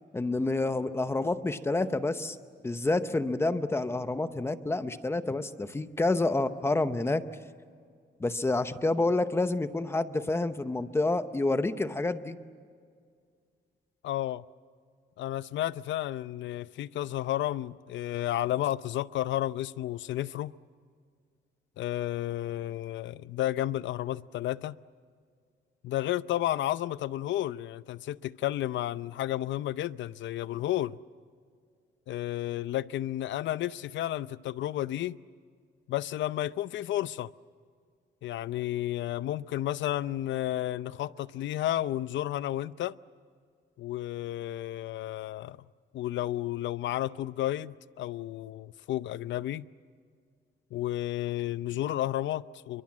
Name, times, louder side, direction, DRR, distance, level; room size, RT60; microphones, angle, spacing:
voice 1, 0.1-2.4 2.6-7.2 8.2-12.4, left 2 dB, 15° left, 0.8 m, -28 dB
voice 2, 14.0-14.4 15.2-20.5 21.8-24.8 25.8-31.0 32.1-35.2 35.9-37.3 38.2-42.9 43.8-45.6 45.9-49.6 50.7-52.8, left 13 dB, 80° left, 0.6 m, -32 dB
29.5 x 23.5 x 7.5 m
cardioid pair, 180°, 19 cm